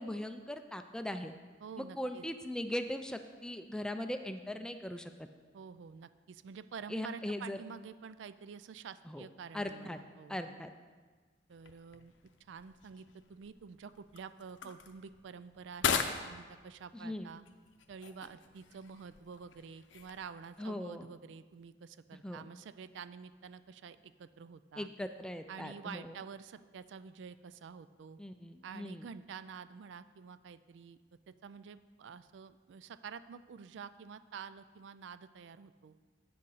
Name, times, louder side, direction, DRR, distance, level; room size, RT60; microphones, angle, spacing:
voice 1, 0.0-1.3 1.8-5.1 6.9-7.6 9.1-9.2 9.5-10.0 10.3-10.7 16.9-17.3 20.6-21.1 22.2-22.4 24.8-26.1 28.2-29.0, left 1 dB, 5° left, 7 dB, 0.3 m, -39 dB
voice 2, 1.6-2.3 5.5-10.6 11.5-12.1 12.4-17.4 17.9-24.9 25.5-28.2 28.6-31.0 31.3-36.0, right 6 dB, 80° right, 14 dB, 0.4 m, -49 dB
sound 1, 11.5-20.7, left 6 dB, 85° left, 0.6 m, -41 dB
8.5 x 6.5 x 5.5 m, 1.4 s
head